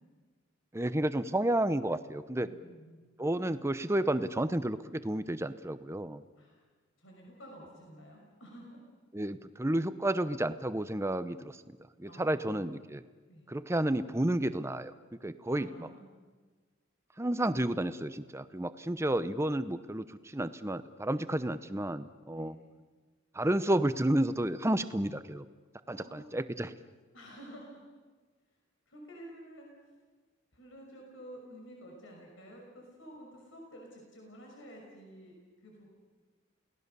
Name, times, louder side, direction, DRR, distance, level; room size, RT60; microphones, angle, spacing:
voice 1, 0.7-2.5 3.2-6.2 9.1-11.6 12.0-13.0 13.5-14.9 15.2-15.9 17.2-22.6 23.3-25.4 25.9-26.7, right 1 dB, 15° right, 12 dB, 0.7 m, -31 dB
voice 2, 2.4-3.0 6.4-6.6 7.0-8.8 12.1-12.7 13.3-13.5 15.5-16.1 21.2-21.4 22.3-22.7 25.9-26.3 27.1-27.8 28.9-29.7 30.5-35.9, equal, 70° left, -1 dB, 5.9 m, -51 dB
29.5 x 18.5 x 6.9 m, 1.4 s
head